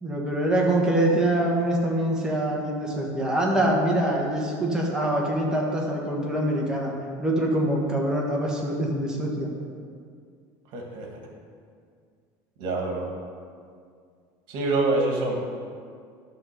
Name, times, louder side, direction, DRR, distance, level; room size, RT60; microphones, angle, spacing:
voice 1, 0.0-6.9 7.2-9.5, right 1 dB, 5° right, -2 dB, 1.3 m, -24 dB
voice 2, 10.7-11.1 12.6-13.1 14.5-15.4, right 2 dB, 55° right, 1 dB, 1.7 m, -25 dB
11.0 x 3.8 x 6.6 m, 2.1 s
cardioid pair, 160°, 10 cm